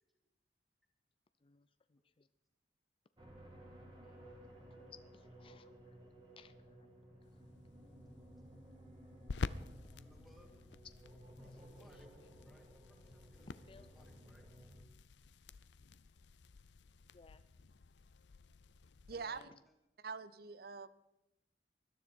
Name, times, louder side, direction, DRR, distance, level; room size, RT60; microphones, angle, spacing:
voice 1, 1.4-2.3 4.0-4.3 4.9-5.7 6.4-6.9 7.3-7.4 12.2-12.3 13.5-13.9 17.1-17.4 19.1-19.5, left 5 dB, 30° left, 12 dB, 0.4 m, -62 dB
sound 1, 3.2-14.8, right 1 dB, 25° right, 2.6 m, -57 dB
sound 2, 7.2-19.4, left 4 dB, 80° left, 0.6 m, -50 dB
voice 2, 9.9-10.6 11.4-14.5, equal, ahead, 0 dB, 2.6 m, -67 dB
voice 3, 19.1-19.5 20.0-20.9, right 5 dB, 60° right, 15 dB, 0.7 m, -44 dB
20.5 x 12.5 x 4.4 m, 0.91 s
head